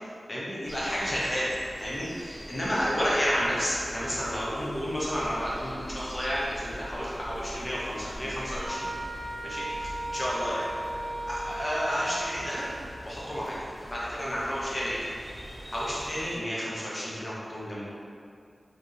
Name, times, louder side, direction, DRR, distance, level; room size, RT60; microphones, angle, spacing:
voice 1, 0.3-1.5 1.8-8.9 9.4-10.7 11.3-12.6 13.0-13.6 13.9-15.0 15.7-17.9, equal, 30° left, -7 dB, 0.7 m, -31 dB
sound 1, 0.6-16.4, equal, 55° right, 1.1 m, -43 dB
Wind instrument woodwind instrument, 8.6-13.0, right 1 dB, 80° right, 0.6 m, -36 dB
2.7 x 2.0 x 2.4 m, 2.2 s
wide cardioid pair, 50°, 0 cm